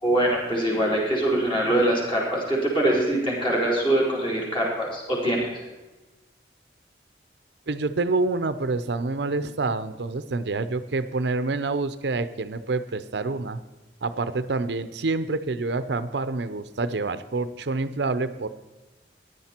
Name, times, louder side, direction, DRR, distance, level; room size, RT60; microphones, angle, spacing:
voice 1, 0.0-5.5, right 1 dB, 30° left, -3 dB, 4.2 m, -23 dB
voice 2, 7.7-13.6 14.0-18.5, right 3 dB, 75° right, 12 dB, 0.6 m, -27 dB
15.5 x 10.5 x 4.4 m, 1.2 s
head